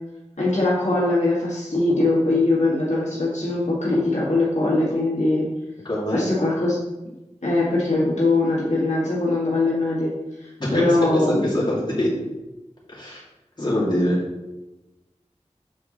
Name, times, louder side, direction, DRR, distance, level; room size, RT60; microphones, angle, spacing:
voice 1, 0.4-5.5 6.1-6.8 7.4-10.1 10.4-11.6, left 2 dB, 75° left, -7 dB, 2.0 m, -21 dB
voice 2, 5.8-6.3 10.6-12.1 12.9-13.2 13.6-14.2, left 1 dB, 35° left, -6 dB, 2.4 m, -24 dB
7.4 x 4.6 x 3.8 m, 1.0 s
wide cardioid pair, 55°, 12 cm